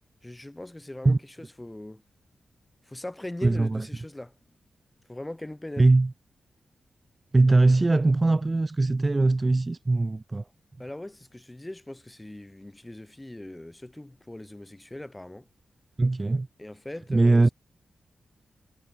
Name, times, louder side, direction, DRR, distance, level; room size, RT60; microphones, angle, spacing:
voice 1, 0.2-2.0 2.9-4.3 5.1-5.9 10.8-15.5 16.6-17.5, left 1 dB, 10° left, 4.4 m, -40 dB
voice 2, 3.4-3.9 5.8-6.1 7.3-10.4 16.0-16.5 17.1-17.5, right 2 dB, 25° right, 0.5 m, -21 dB
wide cardioid pair, 115°, 0 cm